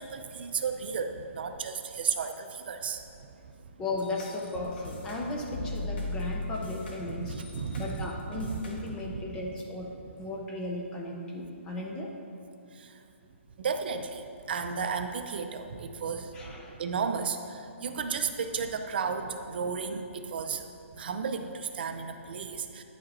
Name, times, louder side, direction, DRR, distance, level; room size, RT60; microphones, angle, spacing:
voice 1, 0.0-3.0 3.4-3.5 7.1-8.1 8.4-8.6 8.9-9.6 9.9-10.0 12.7-12.9 13.6-16.3 16.8-20.7 20.9-22.8, right 5 dB, 50° right, 7 dB, 0.5 m, -34 dB
voice 2, 3.8-7.3 7.8-9.9 10.2-12.1 16.3-16.8, left 2 dB, 10° left, 0 dB, 0.5 m, -36 dB
sound 1, 4.0-9.1, left 2 dB, 50° left, 1.3 m, -38 dB
9.5 x 5.1 x 4.1 m, 2.6 s
hypercardioid pair, 170°, 7 cm